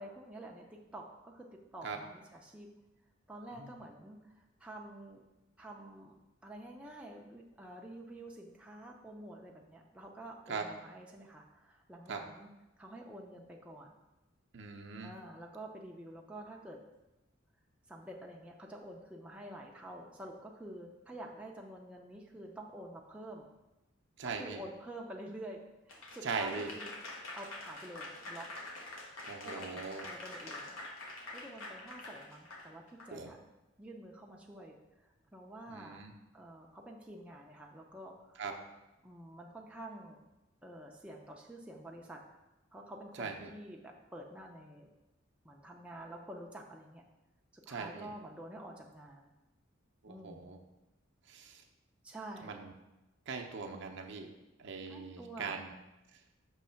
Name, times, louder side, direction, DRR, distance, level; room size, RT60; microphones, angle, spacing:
voice 1, 0.0-2.7 3.3-5.2 5.6-12.5 12.8-14.0 15.0-16.8 17.9-23.5 24.2-26.9 27.4-28.5 29.4-30.8 31.3-33.4 33.8-36.0 36.3-38.4 39.0-40.2 40.6-42.2 42.7-44.9 45.4-47.0 47.5-49.3 50.1-50.5 52.0-52.6 53.7-53.9 54.9-55.6, right 1 dB, 5° right, -2 dB, 0.5 m, -49 dB
voice 2, 14.5-15.1 24.2-24.6 26.2-26.7 29.2-30.0 33.1-33.3 35.7-36.1 38.4-38.5 43.2-43.5 47.7-48.1 50.0-50.6 51.3-51.6 52.4-52.7 53.3-54.3 54.6-55.7, right 5 dB, 60° right, 3 dB, 0.6 m, -40 dB
Applause / Crowd, 25.9-33.1, left 2 dB, 80° left, 1.1 m, -46 dB
6.2 x 3.2 x 5.6 m, 0.99 s
head